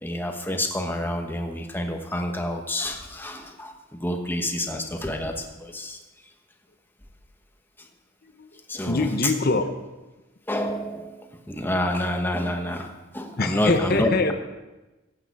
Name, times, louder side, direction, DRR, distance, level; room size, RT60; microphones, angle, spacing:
voice 1, 0.0-6.0 7.8-7.9 8.7-9.1 10.5-14.3, left 1 dB, 10° left, 4 dB, 1.1 m, -28 dB
voice 2, 8.2-9.7 13.4-14.3, left 3 dB, 50° left, 8 dB, 0.9 m, -24 dB
14.5 x 8.9 x 4.7 m, 1.1 s
head